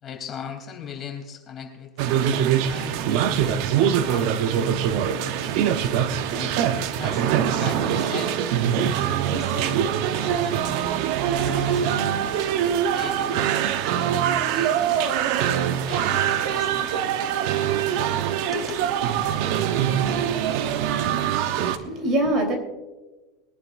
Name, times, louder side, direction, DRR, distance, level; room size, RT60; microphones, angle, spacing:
voice 1, 0.0-1.9 2.7-4.8 5.2-6.6 7.0-8.4 9.1-9.9 10.2-10.8 11.3-12.1 12.5-13.5 14.4-14.9 15.3-17.1 18.5-18.9, left 7 dB, 30° left, 2 dB, 3.2 m, -39 dB
sound 1, 2.0-21.8, right 9 dB, 60° right, 0.9 m, -23 dB
voice 2, 21.0-22.6, right 1 dB, 35° right, 3 dB, 3.7 m, -26 dB
23.0 x 11.0 x 2.6 m, 1.2 s
supercardioid pair, 130°, 0 cm